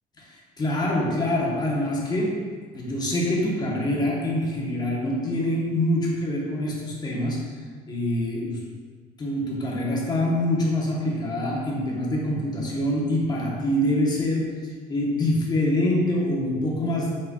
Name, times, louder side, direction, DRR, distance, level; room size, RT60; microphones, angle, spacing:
voice 1, 0.2-7.5 7.9-8.6 9.2-14.6 14.9-17.1, left 1 dB, 25° left, -3 dB, 1.0 m, -25 dB
5.3 x 4.0 x 2.3 m, 1.5 s
cardioid pair, 110°, 17 cm